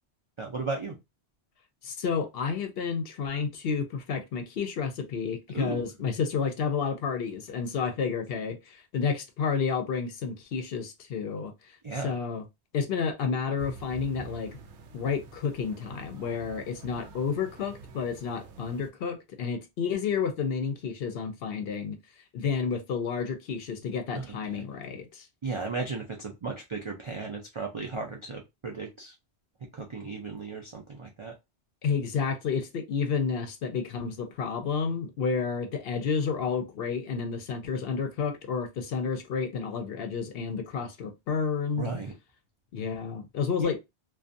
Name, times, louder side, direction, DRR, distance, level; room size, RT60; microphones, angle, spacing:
voice 1, 0.4-1.0 5.5-5.8 11.8-12.1 24.1-24.4 25.4-29.1 29.7-31.3 41.8-42.1 43.6-43.7, right 4 dB, 55° right, 0.3 m, -35 dB
voice 2, 1.8-11.5 12.0-12.5 12.7-14.6 14.9-22.0 22.3-25.3 31.8-41.9 42.7-43.8, left 5 dB, 65° left, 0.7 m, -30 dB
sound 1, 13.6-18.9, right 5 dB, 90° right, 0.9 m, -46 dB
2.6 x 2.2 x 2.5 m
omnidirectional pair, 1.1 m